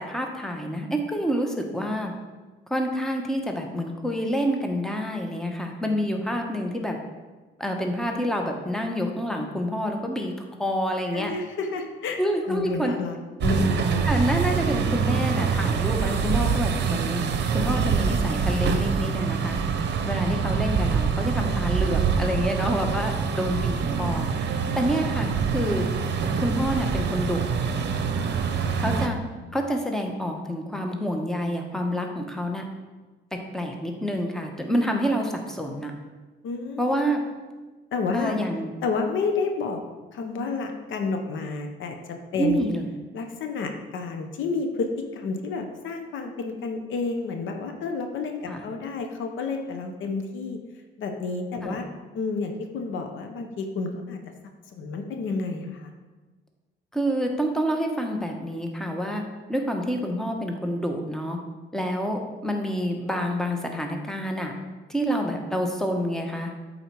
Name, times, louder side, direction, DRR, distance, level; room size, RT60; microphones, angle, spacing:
voice 1, 0.0-2.1 2.7-7.0 7.6-10.3 10.6-11.3 12.2-12.9 14.1-17.2 17.5-19.6 20.1-25.9 26.4-27.4 28.8-29.2 29.5-32.6 33.3-35.9 36.8-37.2 38.1-38.7 42.4-42.9 48.5-48.6 51.6-51.8 56.9-59.2 59.5-61.4 61.7-64.5 64.9-66.5, equal, ahead, 2 dB, 1.0 m, -27 dB
voice 2, 11.1-12.2 12.5-13.2 13.4-14.1 28.8-28.9 29.4-29.6 36.4-37.0 37.9-38.3 38.8-39.8 40.1-42.0 42.3-42.8 43.1-50.6 51.0-51.8 52.1-54.2 54.7-55.9, left 4 dB, 75° left, 5 dB, 0.9 m, -30 dB
sound 1, 13.4-29.1, right 6 dB, 60° right, 0.7 m, -25 dB
8.0 x 4.1 x 4.7 m, 1.3 s
cardioid pair, 90°, 20 cm